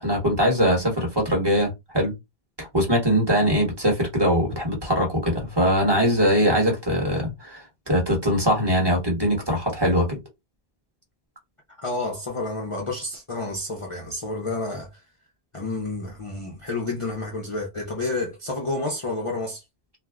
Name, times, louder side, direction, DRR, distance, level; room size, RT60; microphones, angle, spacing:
voice 1, 0.0-2.1 2.6-10.2, equal, 25° right, 1.3 m, -22 dB
voice 2, 11.8-15.0 15.5-19.6, left 2 dB, 35° left, 0.6 m, -30 dB
2.5 x 2.2 x 3.4 m
omnidirectional pair, 1.1 m